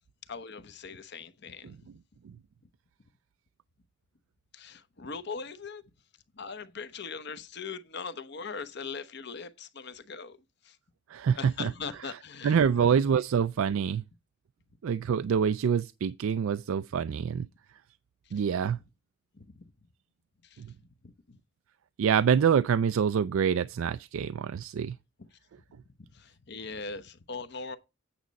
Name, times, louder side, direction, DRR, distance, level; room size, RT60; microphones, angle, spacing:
voice 1, 0.3-1.9 4.5-5.8 6.4-10.4 10.6-10.8 11.4-12.9 18.3-18.4 19.3-19.7 20.4-21.4 25.2-25.4 26.1-27.8, left 5 dB, 60° left, 0.9 m, -41 dB
voice 2, 11.1-11.7 12.4-14.0 14.8-17.5 18.3-18.8 20.6-20.7 22.0-25.0, right 7 dB, 85° right, 0.4 m, -26 dB
8.7 x 6.2 x 4.1 m
head